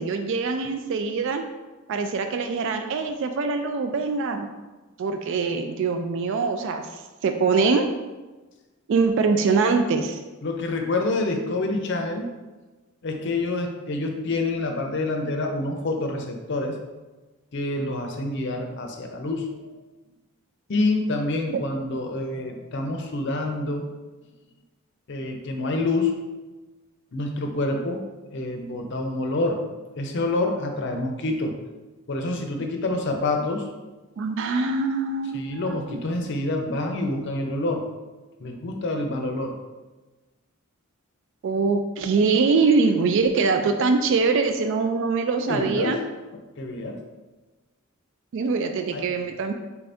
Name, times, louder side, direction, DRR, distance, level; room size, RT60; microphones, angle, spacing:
voice 1, 0.0-1.4 1.9-4.5 5.0-7.9 8.9-10.2 21.5-21.6 34.2-36.0 41.4-46.0 48.3-49.5, right 4 dB, 60° right, 6 dB, 0.3 m, -23 dB
voice 2, 10.4-12.3 13.0-16.8 17.5-19.5 20.7-23.9 25.1-26.1 27.1-28.0 28.3-29.7 30.0-31.6 32.1-33.7 35.3-37.9 38.4-39.6 45.5-46.0 46.6-47.0 48.9-49.0, left 2 dB, 55° left, 3 dB, 0.5 m, -27 dB
4.5 x 2.6 x 3.4 m, 1.2 s
head